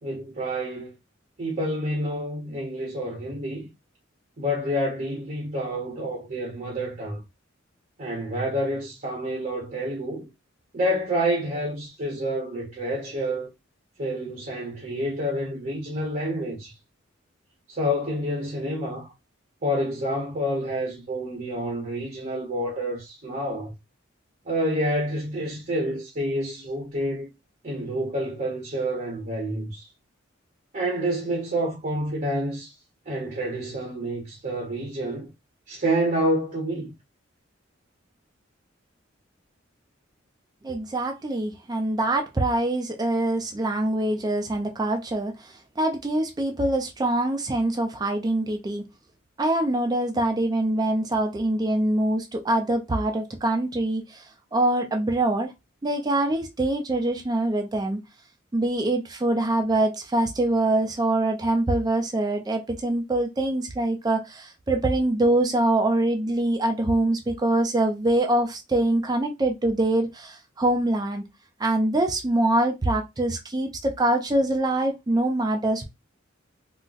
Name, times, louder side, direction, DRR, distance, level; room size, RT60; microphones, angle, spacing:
voice 1, 0.0-1.0 1.4-3.7 4.4-7.2 8.0-10.3 10.7-13.5 14.0-16.7 17.7-19.1 19.6-23.7 24.4-27.3 27.6-29.9 30.7-32.7 33.1-35.3 35.7-36.9, equal, 40° right, 0.7 m, -28 dB
voice 2, 40.6-48.8 49.4-55.5 55.8-58.0 58.5-71.2 71.6-75.8, right 1 dB, 20° right, 0.4 m, -24 dB
3.8 x 2.1 x 2.4 m
head